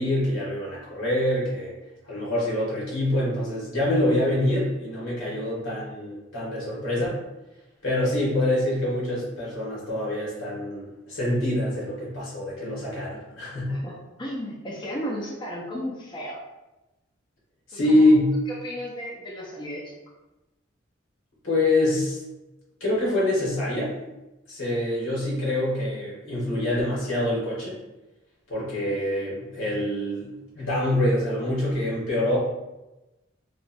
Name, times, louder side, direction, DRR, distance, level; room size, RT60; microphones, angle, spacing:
voice 1, 0.0-1.7 2.0-7.2 7.8-13.7 17.7-18.3 21.4-22.2 22.8-23.9 24.5-27.8 28.5-32.4, left 1 dB, 85° left, -6 dB, 1.3 m, -25 dB
voice 2, 13.7-16.4 17.7-18.1 18.6-20.0, equal, 25° left, -5 dB, 0.4 m, -34 dB
3.0 x 2.2 x 2.5 m, 1.0 s
head